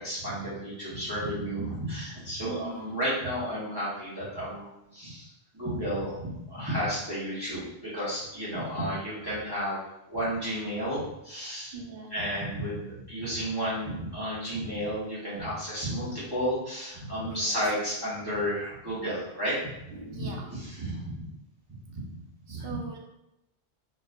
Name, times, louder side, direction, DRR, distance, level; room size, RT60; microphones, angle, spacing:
voice 1, 0.0-9.8 10.1-11.7 12.1-20.3 20.5-21.3 21.7-22.0 22.5-22.7, equal, 20° right, -11 dB, 1.3 m, -32 dB
voice 2, 2.4-2.9 11.7-12.1 17.2-17.6 19.9-20.5 22.5-23.0, right 4 dB, 65° right, 0 dB, 0.9 m, -40 dB
4.3 x 3.3 x 2.5 m, 0.89 s
omnidirectional pair, 1.1 m